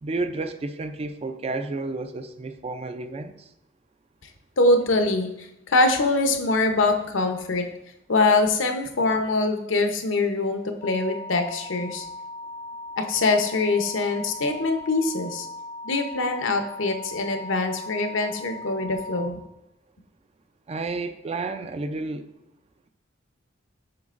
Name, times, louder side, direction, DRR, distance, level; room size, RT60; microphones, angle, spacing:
voice 1, 0.0-3.5 20.7-22.3, right 3 dB, 30° right, 9 dB, 0.4 m, -31 dB
voice 2, 4.6-7.7 8.1-12.1 13.0-15.5 15.8-19.4, left 2 dB, 80° left, 5 dB, 0.8 m, -23 dB
sound 1, 10.8-19.3, left 2 dB, 25° left, 0.5 m, -38 dB
7.7 x 5.9 x 2.5 m, 0.84 s
head